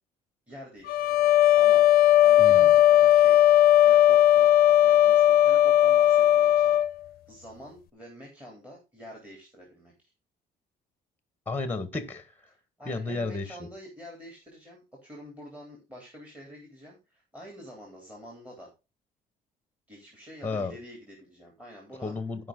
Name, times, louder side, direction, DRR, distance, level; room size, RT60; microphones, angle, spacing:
voice 1, 0.5-1.9 2.2-3.4 3.8-6.8 7.3-10.1 12.8-18.7 19.9-22.2, equal, 10° right, 0 dB, 3.6 m, -47 dB
sound 1, 0.9-6.9, left 12 dB, 60° left, 0.7 m, -18 dB
voice 2, 2.4-2.7 11.5-12.3 12.8-13.7 20.4-20.8 22.0-22.5, left 3 dB, 10° left, 10 dB, 1.4 m, -32 dB
14.0 x 5.4 x 3.9 m, 0.28 s
cardioid pair, 110°, 17 cm